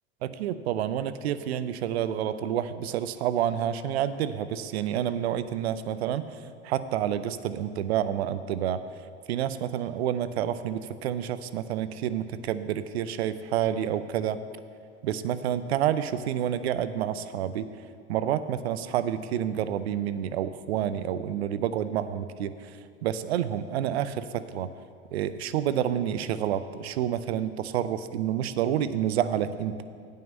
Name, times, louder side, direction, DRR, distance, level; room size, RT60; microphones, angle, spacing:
voice 1, 0.4-6.3 6.6-8.8 9.3-14.4 15.0-17.7 18.1-22.5 23.0-24.7 25.1-29.8, right 10 dB, 80° right, 13 dB, 0.6 m, -29 dB
9.2 x 5.6 x 7.8 m, 2.2 s
hypercardioid pair, 90°, 31 cm